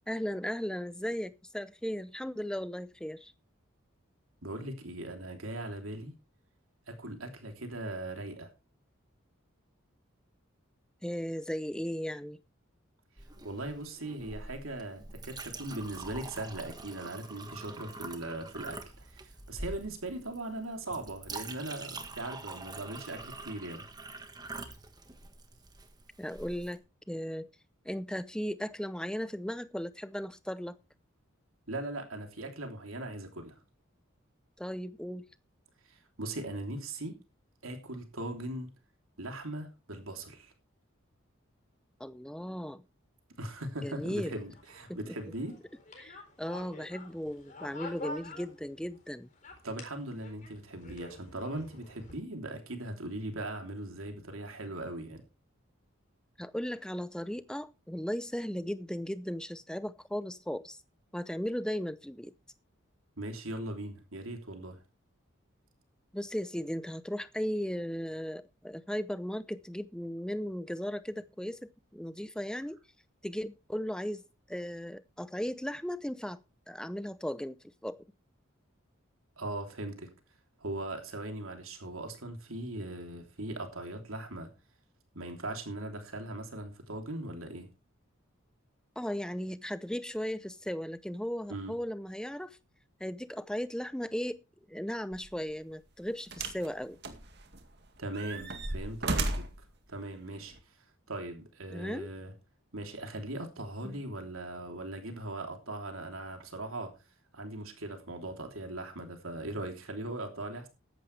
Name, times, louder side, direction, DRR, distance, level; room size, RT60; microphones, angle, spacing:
voice 1, 0.1-3.3 11.0-12.4 26.2-27.5 27.8-30.8 34.6-35.3 42.0-42.8 43.8-44.4 44.9-45.1 46.0-49.3 56.4-60.8 61.1-62.3 66.1-72.8 73.2-74.2 74.5-76.4 76.7-77.6 77.8-78.0 89.0-92.6 93.0-94.4 94.7-97.0 101.7-102.1 103.8-104.0, equal, 5° left, 0.6 m, -36 dB
voice 2, 4.4-6.1 6.9-8.5 13.4-23.9 31.7-33.5 35.9-37.2 37.6-38.7 39.2-40.5 43.4-45.6 49.6-55.2 63.2-64.8 79.4-80.1 80.6-84.5 85.1-87.7 91.5-91.7 98.0-99.4 99.9-100.5 101.1-102.3 102.7-106.9 107.3-110.7, right 1 dB, 85° right, 3.2 m, -39 dB
Chink clink, 13.2-26.8, right 3 dB, 20° right, 1.5 m, -45 dB
sound 1, 44.0-49.0 49.3-52.2, left 2 dB, 35° left, 4.0 m, -47 dB
sound 2, 95.1-95.3 96.3-96.7 97.0-97.7 98.1-99.6 100.5-100.6, right 2 dB, 55° right, 2.1 m, -34 dB
15.0 x 11.5 x 3.3 m
head